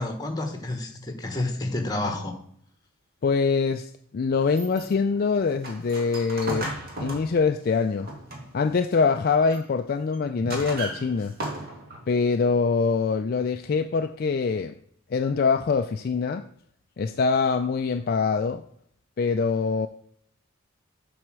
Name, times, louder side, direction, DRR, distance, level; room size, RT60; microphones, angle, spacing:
voice 1, 0.0-2.4, left 2 dB, 20° left, 1.2 m, -29 dB
voice 2, 3.2-6.7 7.0-8.1 8.5-11.4 12.1-14.7 15.1-16.5 17.0-18.6 19.2-19.9, left 5 dB, 45° left, 0.3 m, -24 dB
sound 1, 4.4-8.7 9.1-9.7 10.1-12.1, right 1 dB, 45° right, 1.8 m, -36 dB
7.8 x 4.2 x 6.1 m
head